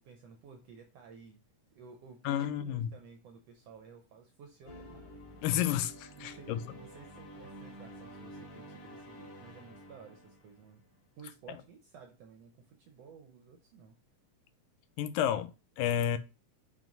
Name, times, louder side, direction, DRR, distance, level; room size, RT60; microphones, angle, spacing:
voice 1, 0.0-1.4 1.7-5.2 6.2-10.8 11.2-14.0, right 6 dB, 75° right, 1.5 m, -54 dB
voice 2, 2.2-2.9 5.4-6.6 15.0-16.2, left 10 dB, 90° left, 2.4 m, -31 dB
sound 1, 4.6-11.1, equal, 50° left, 2.6 m, -50 dB
6.2 x 3.9 x 5.2 m
omnidirectional pair, 3.8 m